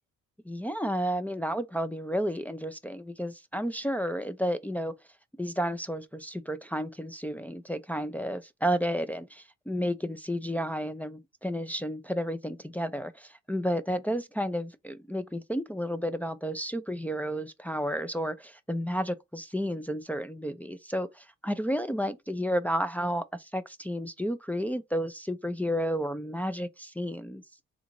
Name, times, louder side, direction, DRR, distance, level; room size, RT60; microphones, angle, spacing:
voice 1, 0.5-4.9 5.4-27.4, equal, 5° left, 0.4 m, -32 dB
3.7 x 2.5 x 3.0 m
cardioid pair, 90°, 30 cm